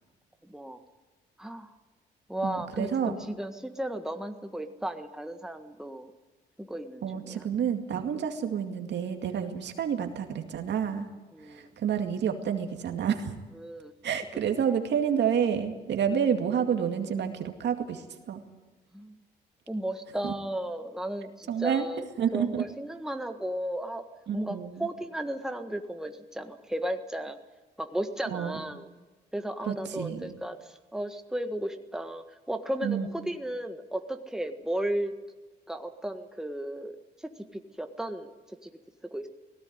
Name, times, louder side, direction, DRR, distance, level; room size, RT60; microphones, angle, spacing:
voice 1, 0.4-0.8 1.4-1.7 2.3-6.1 6.6-7.5 11.3-11.7 13.6-13.9 18.9-19.2 19.7-22.0 22.3-24.0 24.3-27.4 27.8-28.8 29.3-35.1 35.7-37.3 37.8-38.3 38.6-38.7 39.1-39.3, right 1 dB, 5° right, 6 dB, 1.6 m, -34 dB
voice 2, 2.4-3.1 7.0-11.1 11.4-13.3 14.0-18.4 20.2-20.3 21.5-21.9 22.2-22.6 24.3-24.9 28.3-28.6 29.7-30.4 32.8-33.1, right 8 dB, 70° right, 5 dB, 2.2 m, -29 dB
18.0 x 16.5 x 9.7 m, 1.2 s
cardioid pair, 75°, 18 cm